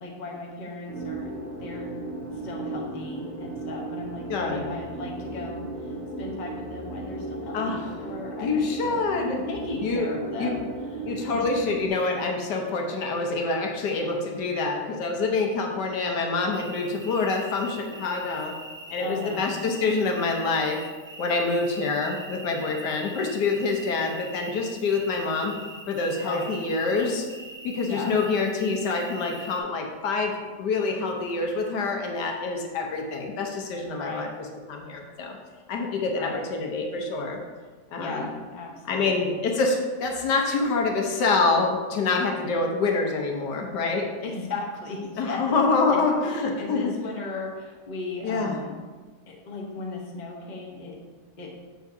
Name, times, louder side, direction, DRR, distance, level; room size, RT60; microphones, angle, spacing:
voice 1, 0.0-1.3 1.6-1.9 2.3-9.0 9.5-10.7 11.0-11.4 19.0-19.5 26.2-26.5 27.9-28.2 34.0-34.3 36.2-36.4 38.0-39.5 44.2-45.4 45.8-48.8 49.3-51.0 51.4-51.5, left 3 dB, 35° left, -1 dB, 0.9 m, -37 dB
sound 1, 0.9-11.9, right 2 dB, 85° right, 2.4 m, -35 dB
voice 2, 4.3-4.7 7.5-7.8 8.4-9.4 9.8-10.1 10.4-10.5 11.0-18.5 18.9-20.8 21.2-25.5 25.9-27.3 27.6-30.3 30.6-34.3 34.7-35.4 35.7-37.4 37.9-38.3 38.9-44.1 45.2-46.9 48.2-48.6, left 3 dB, 85° left, 1 dB, 1.5 m, -26 dB
sound 2, 16.5-29.6, right 2 dB, 35° right, 0.4 m, -43 dB
7.6 x 6.4 x 2.7 m, 1.4 s
omnidirectional pair, 1.8 m